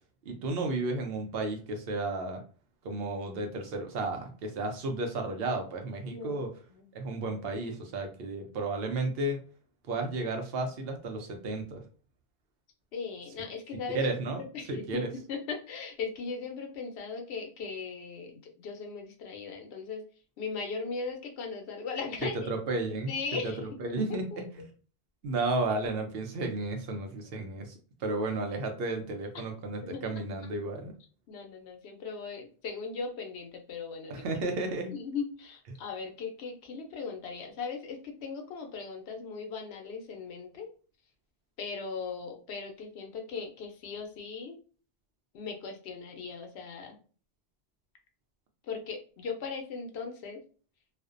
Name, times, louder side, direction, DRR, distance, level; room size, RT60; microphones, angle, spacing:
voice 1, 0.3-2.4 2.8-6.5 6.9-9.4 9.9-11.8 13.7-14.4 14.7-15.1 22.5-23.1 23.4-24.3 24.5-24.6 25.2-30.9 34.1-34.9, right 2 dB, 70° right, 4 dB, 0.8 m, -33 dB
voice 2, 12.9-14.1 14.4-14.9 15.1-20.0 20.4-22.5 23.1-23.6 24.3-24.4 29.3-29.4 29.9-30.2 31.3-34.2 34.9-40.7 41.6-44.6 45.3-47.0 48.7-50.4, left 5 dB, 85° left, 4 dB, 0.9 m, -38 dB
2.4 x 2.1 x 2.4 m, 0.40 s
omnidirectional pair, 1.1 m